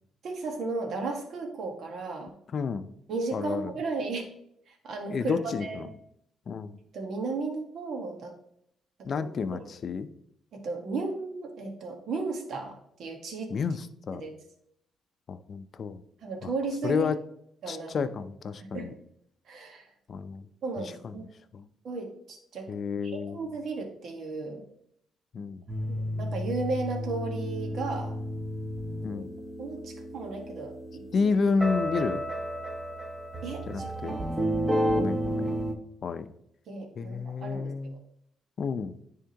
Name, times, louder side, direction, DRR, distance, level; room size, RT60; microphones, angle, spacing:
voice 1, 0.2-2.3 3.1-4.3 4.7-5.9 6.9-8.3 9.1-9.6 10.5-13.5 14.1-14.3 16.2-17.1 17.6-18.1 18.7-18.9 19.5-19.8 20.6-21.3 21.8-22.7 23.0-24.7 25.8-28.2 29.0-29.3 29.6-31.3 33.4-34.2 36.7-38.0, right 3 dB, 65° right, 2 dB, 1.5 m, -35 dB
voice 2, 2.5-2.9 3.3-3.7 5.1-5.9 6.5-6.8 9.0-10.1 13.5-14.2 15.3-16.0 16.4-16.5 16.8-17.2 17.7-18.9 20.1-20.4 20.8-21.1 21.5-21.7 22.7-23.4 25.3-25.6 29.0-29.3 31.1-32.2 33.7-34.2 35.0-35.6 36.0-36.3 37.0-38.0 38.6-39.0, left 5 dB, 50° left, 11 dB, 0.5 m, -30 dB
sound 1, 25.7-35.7, equal, 20° right, 1.0 m, -32 dB
10.0 x 3.6 x 2.9 m, 0.72 s
cardioid pair, 90°, 0 cm